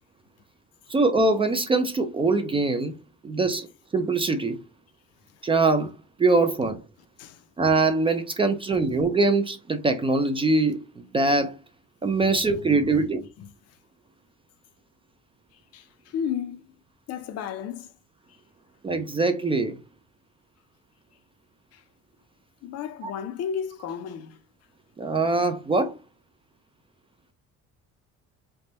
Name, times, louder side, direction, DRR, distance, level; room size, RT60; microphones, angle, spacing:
voice 1, 0.9-3.0 3.2-3.7 3.9-4.6 5.4-5.9 6.2-6.8 7.6-11.5 12.0-13.3 18.8-19.8 23.0-23.1 25.0-25.9, right 3 dB, 20° right, 0.4 m, -23 dB
voice 2, 12.3-13.1 13.4-13.5 15.7-16.7 17.1-17.9 21.7-21.8 22.6-24.4, left 8 dB, 55° left, 0.6 m, -34 dB
3.4 x 2.2 x 3.9 m
cardioid pair, 155°, 29 cm